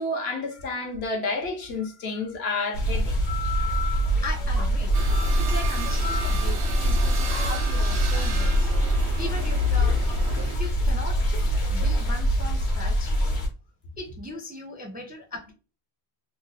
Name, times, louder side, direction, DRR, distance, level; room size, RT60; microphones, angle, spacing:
voice 1, 0.0-3.2 8.1-8.2, left 3 dB, 70° left, 1.1 m, -30 dB
sound 1, 2.7-13.5, equal, 90° left, 1.2 m, -24 dB
sound 2, 3.1-12.3, left 6 dB, 45° left, 0.8 m, -38 dB
voice 2, 4.2-5.0 5.4-8.7 9.2-10.0 10.4-11.2 11.7-13.1 14.0-15.5, left 2 dB, 15° right, 0.4 m, -38 dB
sound 3, 4.9-10.6, right 5 dB, 90° right, 1.0 m, -35 dB
3.0 x 2.1 x 3.9 m
omnidirectional pair, 1.1 m